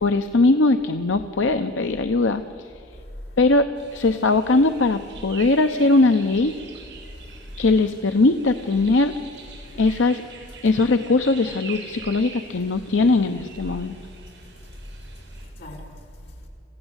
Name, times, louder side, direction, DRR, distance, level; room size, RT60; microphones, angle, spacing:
voice 1, 0.0-2.4 3.4-3.7 3.9-6.6 7.6-9.1 9.8-10.2 10.6-14.0, left 3 dB, 80° left, 8 dB, 0.8 m, -20 dB
voice 2, 2.9-3.4 7.1-7.6 14.4-16.5, equal, 60° left, -2 dB, 4.8 m, -41 dB
sound 1, 3.8-15.4, right 4 dB, 70° right, 6.4 m, -44 dB
27.5 x 15.5 x 8.1 m, 2.7 s
head